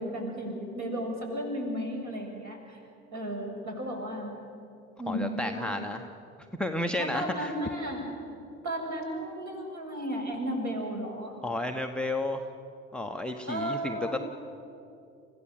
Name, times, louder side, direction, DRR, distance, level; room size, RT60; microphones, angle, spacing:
voice 1, 0.0-2.8 3.1-4.3 5.0-5.8 7.0-8.1 8.6-11.4 13.5-14.2, equal, 40° right, 1 dB, 6.9 m, -34 dB
voice 2, 5.1-6.1 6.6-7.5 11.4-12.5 12.9-14.2, left 1 dB, ahead, 7 dB, 1.1 m, -32 dB
30.0 x 16.0 x 7.6 m, 2.6 s
figure-of-eight pair, 65°, 41 cm